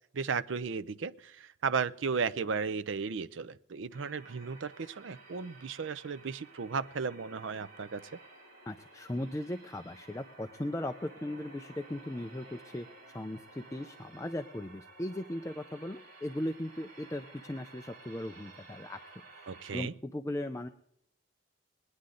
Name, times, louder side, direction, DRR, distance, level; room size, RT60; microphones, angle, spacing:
voice 1, 0.1-8.1 19.5-19.9, right 5 dB, 70° right, 13 dB, 0.5 m, -35 dB
sound 1, 3.9-19.8, right 2 dB, 45° right, 2.7 m, -54 dB
voice 2, 8.7-20.7, left 1 dB, 15° left, 6 dB, 0.4 m, -38 dB
21.5 x 9.6 x 3.8 m, 0.72 s
head